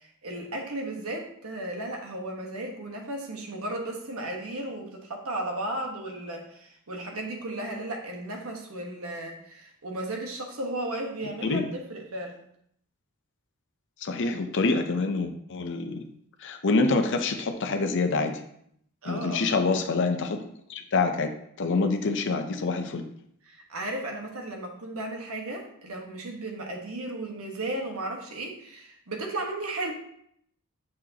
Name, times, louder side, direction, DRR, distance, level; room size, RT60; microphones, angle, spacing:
voice 1, 0.0-12.4 19.0-19.5 23.5-29.9, right 1 dB, 75° right, 1 dB, 1.3 m, -35 dB
voice 2, 14.0-16.0 16.4-18.4 19.0-21.3 21.6-23.0, left 3 dB, 60° left, 6 dB, 0.6 m, -26 dB
6.4 x 6.0 x 2.8 m, 0.69 s
head